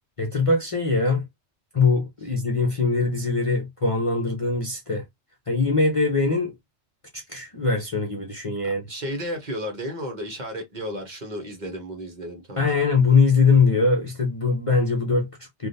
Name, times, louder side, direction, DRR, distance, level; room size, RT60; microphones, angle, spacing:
voice 1, 0.2-1.2 1.7-5.0 5.5-6.5 7.1-8.8 12.6-15.7, left 4 dB, 35° left, 0.7 m, -22 dB
voice 2, 8.9-12.8, equal, 40° right, 1.2 m, -33 dB
3.4 x 2.5 x 2.6 m
omnidirectional pair, 1.2 m